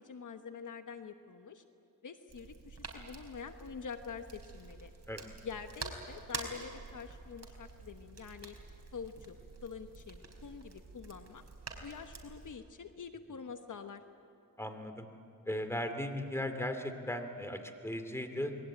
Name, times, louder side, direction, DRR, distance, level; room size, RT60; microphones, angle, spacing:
voice 1, 0.0-1.6 2.0-4.9 5.4-8.5 8.9-9.4 9.6-11.4 11.8-14.0, left 6 dB, 60° left, 7 dB, 1.2 m, -46 dB
sound 1, 2.3-12.5, right 3 dB, 45° right, 4.4 m, -47 dB
voice 2, 14.6-15.1 15.5-18.6, left 1 dB, 10° left, 7 dB, 2.6 m, -37 dB
28.0 x 21.5 x 8.9 m, 2.6 s
cardioid pair, 80°, 34 cm